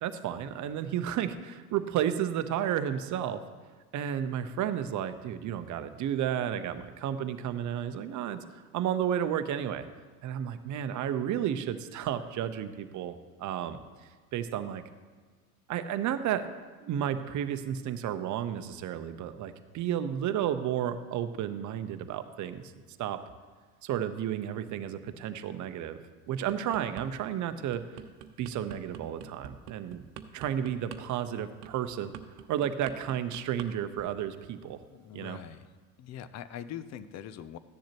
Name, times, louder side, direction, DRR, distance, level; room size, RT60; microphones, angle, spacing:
voice 1, 0.0-3.4 3.9-8.4 8.7-9.9 10.2-13.8 14.3-14.8 15.7-16.5 16.8-22.7 23.0-23.2 23.8-26.0 26.3-27.8 28.4-30.0 30.3-32.1 32.5-34.8 35.1-35.4, right 10 dB, 40° right, 10 dB, 0.9 m, -32 dB
sound 1, 26.3-27.1 27.5-33.7 34.0-34.3, right 10 dB, 70° right, 1.0 m, -45 dB
voice 2, 34.9-35.7 36.0-37.6, left 9 dB, 35° left, 14 dB, 0.6 m, -42 dB
15.0 x 10.0 x 3.0 m, 1.5 s
hypercardioid pair, 80°, 47 cm